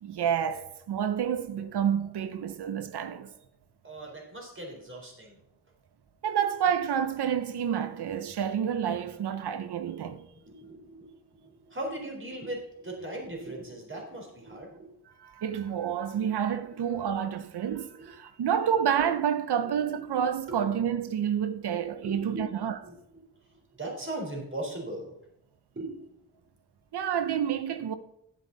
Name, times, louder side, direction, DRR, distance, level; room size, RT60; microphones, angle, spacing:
voice 1, 0.0-3.3 6.2-10.3 15.2-22.8 26.9-27.9, right 8 dB, 75° right, 0.9 m, -29 dB
voice 2, 3.8-5.4 9.1-9.2 10.2-14.9 16.2-16.3 16.6-16.8 18.0-18.1 19.6-20.7 21.7-22.6 22.8-22.9 23.5-25.1 25.7-26.1, right 1 dB, 30° right, 4.0 m, -39 dB
10.5 x 8.3 x 4.0 m
cardioid pair, 60°, 40 cm